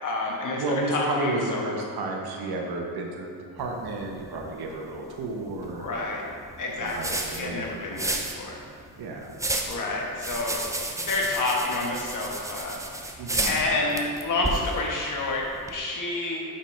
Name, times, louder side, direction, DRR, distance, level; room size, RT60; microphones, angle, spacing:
voice 1, 0.0-1.6 5.8-6.2 6.6-8.6 9.7-10.6 10.9-12.8 13.0-13.2 13.4-16.4, left 2 dB, 55° left, -1 dB, 1.2 m, -29 dB
voice 2, 0.6-5.9 6.8-8.2 9.0-9.3 13.2-13.6, right 2 dB, 75° right, 0 dB, 1.1 m, -32 dB
sound 1, 3.6-15.7, right 2 dB, 10° right, 0.4 m, -34 dB
5.9 x 5.4 x 4.4 m, 2.3 s
cardioid pair, 130°, 38 cm